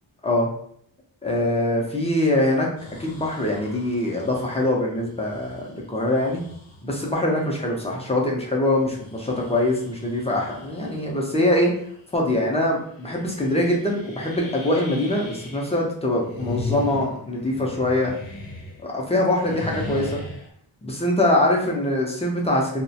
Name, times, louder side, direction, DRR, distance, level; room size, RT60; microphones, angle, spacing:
voice 1, 1.2-2.7 3.0-6.4 6.8-11.7 12.1-18.1 18.8-20.2 20.8-22.8, left 1 dB, 15° left, -1 dB, 0.4 m, -23 dB
sound 1, 2.8-6.9 7.5-7.6 8.6-11.2 11.6-12.0 12.3-12.4 13.0-15.8 16.1-19.0 19.2-20.5, left 3 dB, 80° left, 0.7 m, -38 dB
2.3 x 2.1 x 2.7 m, 0.63 s
wide cardioid pair, 140°, 45 cm